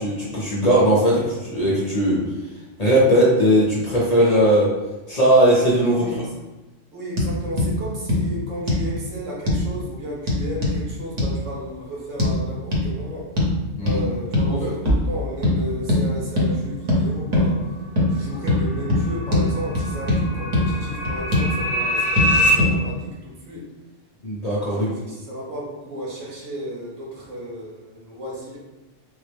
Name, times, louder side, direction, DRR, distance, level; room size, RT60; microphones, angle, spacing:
voice 1, 0.0-2.2 2.8-4.7 5.1-6.0 13.8-14.0 14.5-14.7 24.2-24.9, equal, 40° left, -6 dB, 0.7 m, -18 dB
voice 2, 5.9-6.4 6.9-13.3 13.8-17.8 18.1-23.7 24.7-28.6, equal, 85° right, -4 dB, 1.3 m, -34 dB
sound 1, 7.2-7.3 7.6-7.7 8.1-8.2 8.7-8.9 9.5-9.6 10.3-10.8 11.2-11.3 12.2-12.3 12.7-12.9 13.4-13.5 13.9-14.0 14.3-14.5 14.9-15.1 15.4-15.6 15.9-16.0 16.4-16.5 16.9-17.0 17.3-17.5 18.0-18.1 18.5-18.6 18.9-19.0 19.3-19.5 19.8-20.2 20.5-20.6 21.1-21.5 22.2-22.3 22.6-22.7, left 1 dB, 40° right, 0.8 m, -20 dB
sound 2, 18.2-22.5, left 1 dB, 5° left, 1.0 m, -25 dB
3.6 x 2.1 x 3.3 m, 1.1 s
omnidirectional pair, 1.3 m